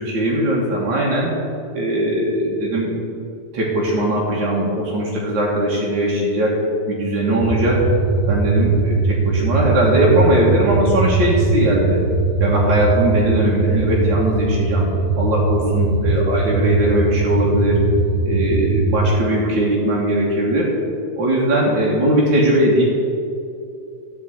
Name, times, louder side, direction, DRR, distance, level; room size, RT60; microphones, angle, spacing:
voice 1, 0.1-1.3 1.7-2.9 3.5-6.6 6.8-7.8 8.3-12.0 12.4-14.9 15.2-17.8 18.2-20.7 21.2-22.8, right 1 dB, 55° right, -4 dB, 1.3 m, -19 dB
sound 1, 7.4-19.2, right 3 dB, 90° right, 1.8 m, -20 dB
12.0 x 5.0 x 8.7 m, 2.5 s
omnidirectional pair, 4.5 m